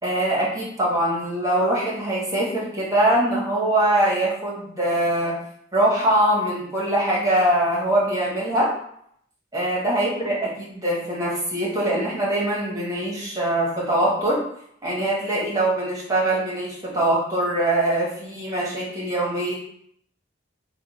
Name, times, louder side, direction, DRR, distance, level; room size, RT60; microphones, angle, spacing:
voice 1, 0.0-5.4 5.7-8.7 9.5-14.4 14.8-19.5, right 1 dB, 15° right, -5 dB, 1.2 m, -23 dB
3.4 x 2.3 x 4.3 m, 0.68 s
head